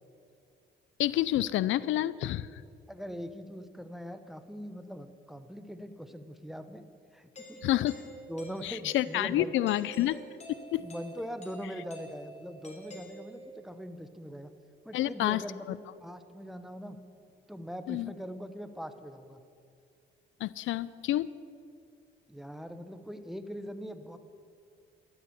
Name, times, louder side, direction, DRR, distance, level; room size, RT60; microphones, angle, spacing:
voice 1, 1.0-2.6 7.6-7.9 8.6-10.2 10.7-10.9 14.9-15.4 17.9-18.1 20.4-21.3, left 14 dB, 80° left, 18 dB, 0.5 m, -28 dB
voice 2, 2.9-6.9 7.1-7.6 8.3-9.7 10.8-14.5 14.8-15.7 16.0-17.0 17.5-19.4 22.3-24.2, equal, ahead, 9 dB, 1.1 m, -41 dB
Doorbell, 7.4-13.7, right 1 dB, 35° left, 3.4 m, -48 dB
13.0 x 12.5 x 8.5 m, 2.4 s
cardioid pair, 90°, 20 cm